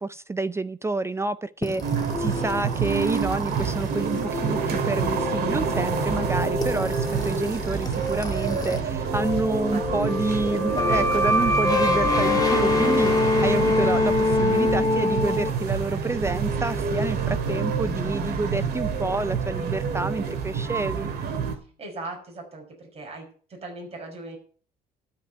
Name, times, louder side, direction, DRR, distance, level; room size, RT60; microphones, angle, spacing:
voice 1, 0.0-1.8 2.2-21.1, right 3 dB, 15° right, 0.5 m, -28 dB
sound 1, 1.6-8.8 9.1-15.5, left 3 dB, 20° left, 1.7 m, -26 dB
sound 2, 1.8-21.6, right 6 dB, 70° right, 2.4 m, -27 dB
voice 2, 2.3-2.6 9.7-11.4 21.5-24.4, right 2 dB, 35° right, 5.8 m, -40 dB
Bass guitar, 17.5-21.0, left 9 dB, 65° left, 2.0 m, -40 dB
12.5 x 5.6 x 8.9 m
cardioid pair, 110°, 17 cm